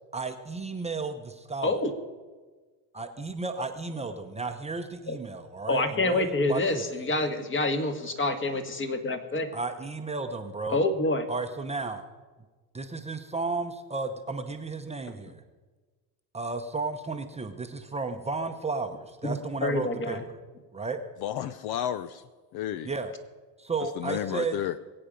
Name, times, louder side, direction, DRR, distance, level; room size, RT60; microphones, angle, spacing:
voice 1, 0.1-1.8 2.9-6.9 9.5-10.8 11.3-12.0 12.7-15.4 16.3-20.4 20.7-21.0 22.8-23.1 23.6-24.6, right 3 dB, 15° right, 5 dB, 0.8 m, -33 dB
voice 2, 5.7-9.5 10.7-11.2 19.2-19.3 19.6-20.2, left 2 dB, 25° left, 7 dB, 1.7 m, -27 dB
voice 3, 21.2-22.2 22.5-22.9 24.0-24.7, left 11 dB, 55° left, 14 dB, 0.7 m, -31 dB
21.5 x 8.7 x 5.2 m, 1.3 s
supercardioid pair, 115°, 45 cm